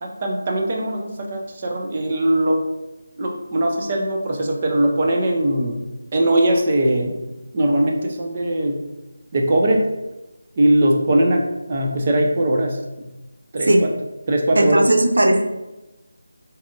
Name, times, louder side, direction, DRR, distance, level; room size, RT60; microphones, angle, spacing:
voice 1, 0.0-2.6 3.2-5.8 6.1-7.2 7.5-8.8 9.3-9.9 10.6-13.1 13.5-13.9 14.3-14.8, right 1 dB, 30° right, 1 dB, 0.5 m, -20 dB
voice 2, 14.6-15.4, right 1 dB, 80° right, 4 dB, 0.5 m, -16 dB
4.1 x 2.5 x 3.7 m, 1.0 s
figure-of-eight pair, 170°, 0 cm